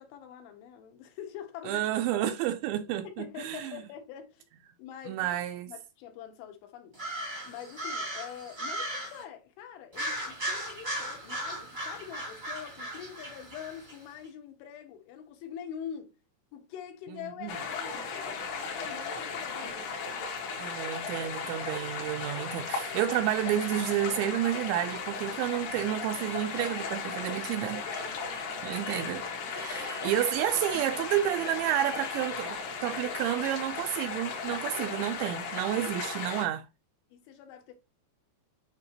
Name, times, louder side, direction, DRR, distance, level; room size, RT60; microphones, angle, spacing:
voice 1, 0.0-1.9 2.1-2.4 3.0-4.5 4.8-5.4 5.7-7.0 7.4-16.2 16.5-20.0 28.6-28.9 37.1-37.8, left 9 dB, 80° left, 3.6 m, -44 dB
voice 2, 1.7-3.8 5.1-5.7 17.4-17.5 20.6-27.8 28.6-36.7, right 12 dB, 80° right, 2.7 m, -30 dB
sound 1, 6.9-9.2 9.9-14.0, right 1 dB, 30° right, 0.8 m, -37 dB
sound 2, 17.5-36.5, left 5 dB, 60° left, 2.5 m, -36 dB
sound 3, 25.7-33.3, equal, 5° left, 1.0 m, -49 dB
9.7 x 4.6 x 2.8 m
omnidirectional pair, 5.6 m